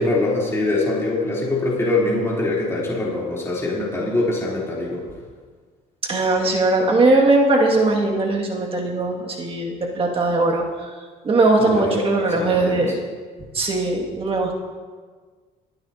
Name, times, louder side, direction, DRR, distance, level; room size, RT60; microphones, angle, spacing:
voice 1, 0.0-5.0 11.6-12.9, left 2 dB, 15° left, -6 dB, 3.7 m, -23 dB
voice 2, 6.1-10.6 11.2-13.0 13.5-14.5, right 2 dB, 35° right, -1 dB, 2.3 m, -19 dB
25.0 x 9.4 x 2.9 m, 1.5 s
cardioid pair, 110°, 17 cm